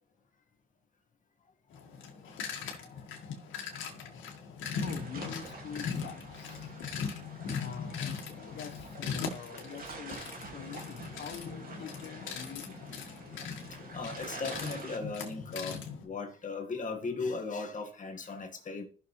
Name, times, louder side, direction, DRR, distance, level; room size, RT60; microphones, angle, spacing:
sound 1, 1.7-16.1, left 6 dB, 80° left, 2.0 m, -40 dB
sound 2, 4.7-15.0, right 3 dB, 45° right, 2.4 m, -48 dB
voice 1, 4.8-7.1 7.6-12.8, left 7 dB, 60° left, 1.3 m, -45 dB
voice 2, 13.9-18.9, left 4 dB, 40° left, 2.0 m, -37 dB
14.5 x 6.4 x 3.3 m
cardioid pair, 90°, 20 cm